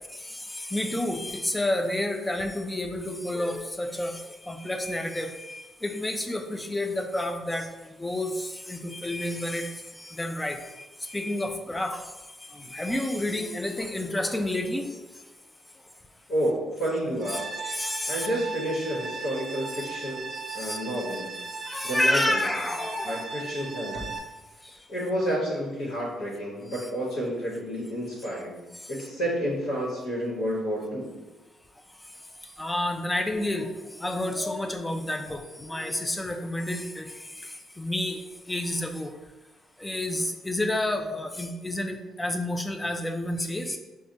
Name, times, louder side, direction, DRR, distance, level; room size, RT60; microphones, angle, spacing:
voice 1, 0.1-15.3 17.3-18.3 19.8-19.9 20.3-20.8 21.6-23.3 23.9-24.2 24.6-24.9 26.7-26.9 28.8-28.9 31.9-39.2 39.8-43.8, left 1 dB, 15° left, 5 dB, 0.4 m, -30 dB
voice 2, 16.3-17.5 18.1-20.3 20.5-21.3 21.8-22.4 23.0-24.1 24.9-28.6 28.9-31.1, equal, 75° left, -7 dB, 1.2 m, -30 dB
sound 1, 17.2-24.2, right 4 dB, 50° right, 0.5 m, -37 dB
4.8 x 2.3 x 2.8 m, 1.1 s
cardioid pair, 90°, 0 cm